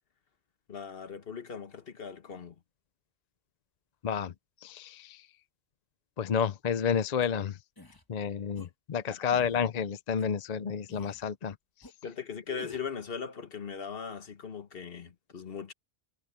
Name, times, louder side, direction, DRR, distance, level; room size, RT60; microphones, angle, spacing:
voice 1, 0.7-2.5 9.2-9.3 12.0-15.7, left 6 dB, 65° left, 1.4 m, -39 dB
voice 2, 4.6-5.2 6.2-7.6 8.1-11.6, left 7 dB, 45° left, 0.6 m, -30 dB
sound 1, 7.2-7.3 7.8-8.0 8.5-8.7 9.3-9.6 10.2-10.3 10.9-11.3 11.8-11.9 12.6-12.9, left 2 dB, 20° left, 1.3 m, -52 dB
omnidirectional pair, 1.1 m